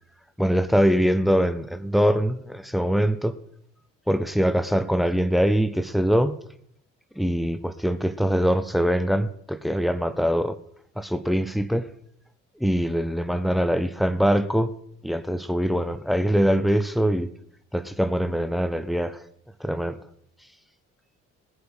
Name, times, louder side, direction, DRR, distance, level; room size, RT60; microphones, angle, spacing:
voice 1, 0.4-3.3 4.1-6.4 7.2-10.6 11.0-11.9 12.6-14.7 15.0-17.3 17.7-19.2 19.6-20.0, equal, ahead, 0.9 m, -23 dB
19.0 x 8.0 x 4.9 m
hypercardioid pair, 50°, 37 cm